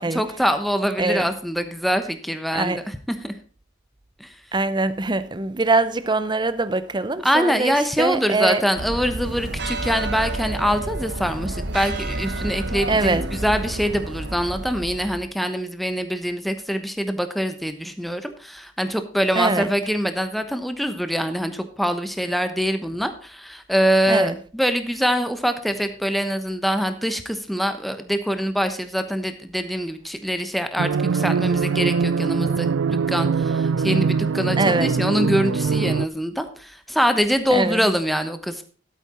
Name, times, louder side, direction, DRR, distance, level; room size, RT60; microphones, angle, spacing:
voice 1, 0.0-2.8 3.2-3.3 4.2-4.3 7.2-32.7 33.1-38.6, equal, ahead, 0.9 m, -24 dB
voice 2, 1.0-1.3 2.5-2.8 4.5-8.6 12.9-13.3 19.3-19.7 24.1-24.4 34.6-35.0 37.5-37.9, right 3 dB, 25° right, 0.7 m, -23 dB
sound 1, 8.8-15.3, right 2 dB, 60° right, 1.4 m, -30 dB
sound 2, 30.8-36.1, right 5 dB, 85° right, 0.4 m, -22 dB
12.5 x 8.5 x 4.3 m
head